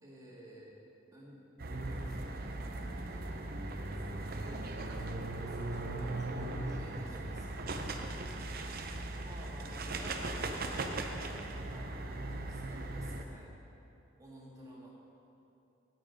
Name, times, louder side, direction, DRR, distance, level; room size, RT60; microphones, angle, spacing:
voice 1, 0.0-0.7 1.1-1.4 1.7-7.9 9.1-13.5 14.2-15.0, right 1 dB, 15° right, -4 dB, 1.8 m, -53 dB
sound 1, 1.6-13.2, right 2 dB, 45° right, 0.6 m, -38 dB
16.5 x 6.0 x 5.2 m, 2.8 s
head